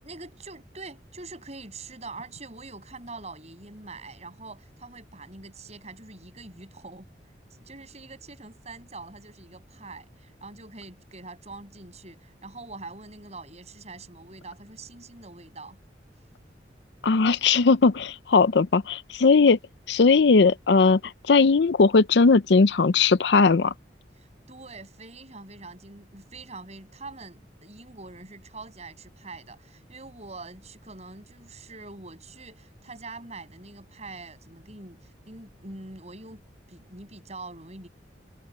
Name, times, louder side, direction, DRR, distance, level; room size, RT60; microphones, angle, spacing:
voice 1, 0.0-7.1 7.5-15.8 24.2-37.9, right 3 dB, 40° right, 7.8 m, -44 dB
voice 2, 17.0-19.6 19.9-23.7, left 4 dB, 70° left, 0.6 m, -19 dB
head